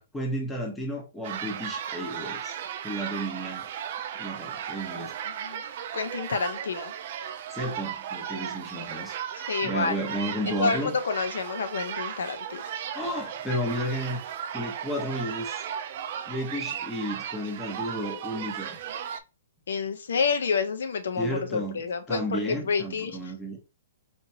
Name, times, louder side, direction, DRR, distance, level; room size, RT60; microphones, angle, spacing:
voice 1, 0.1-2.6 2.8-3.7 4.2-5.1 7.5-9.2 9.6-11.0 12.9-14.2 14.5-15.6 16.3-18.8 21.2-21.8 22.1-23.6, equal, 5° left, 0.8 m, -32 dB
sound 1, 1.2-19.2, right 9 dB, 40° right, 0.4 m, -36 dB
voice 2, 5.9-6.9 9.5-9.9 10.5-12.6 19.7-23.2, left 5 dB, 75° left, 0.7 m, -28 dB
4.4 x 2.9 x 2.7 m
hypercardioid pair, 175°, 0 cm